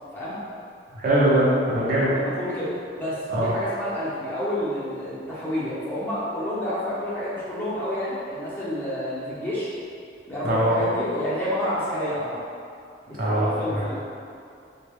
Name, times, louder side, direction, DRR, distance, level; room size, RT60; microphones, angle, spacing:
voice 1, 0.9-2.1 3.3-3.5 10.4-10.8 13.2-13.8, right 1 dB, 55° right, -8 dB, 0.8 m, -21 dB
voice 2, 2.1-9.7 10.3-12.4 13.1-14.0, equal, 10° left, -11 dB, 0.8 m, -29 dB
3.6 x 2.3 x 3.5 m, 2.5 s
head